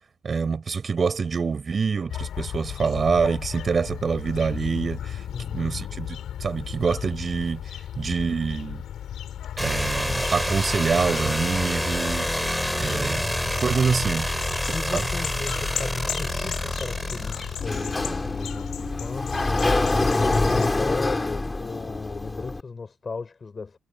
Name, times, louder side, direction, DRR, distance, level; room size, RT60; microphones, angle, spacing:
voice 1, 0.2-5.2 5.5-7.6 8.0-8.8 9.6-12.4 12.8-13.3 13.6-14.3 14.9-15.0, right 5 dB, 40° right, 6.4 m, -25 dB
sound 1, 2.1-20.7, left 10 dB, 75° left, 4.2 m, -35 dB
voice 2, 5.3-5.8 12.7-13.4 14.7-23.8, left 4 dB, 35° left, 5.9 m, -36 dB
sound 2, 9.6-18.3, equal, ahead, 3.1 m, -28 dB
Sliding door, 17.6-22.6, left 2 dB, 20° left, 2.6 m, -25 dB
cardioid pair, 95°, 0 cm